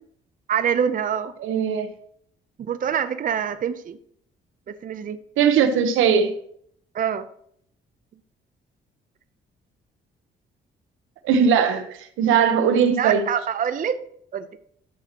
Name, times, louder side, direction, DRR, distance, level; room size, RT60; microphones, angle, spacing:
voice 1, 0.5-1.3 2.7-4.0 4.7-5.2 6.9-7.3 13.0-14.0 14.3-14.5, right 8 dB, 45° right, 0.6 m, -25 dB
voice 2, 1.4-1.9 5.4-6.3 11.2-11.9 12.2-13.2, right 7 dB, 90° right, 1.0 m, -19 dB
12.5 x 7.4 x 2.9 m
cardioid pair, 90°, 20 cm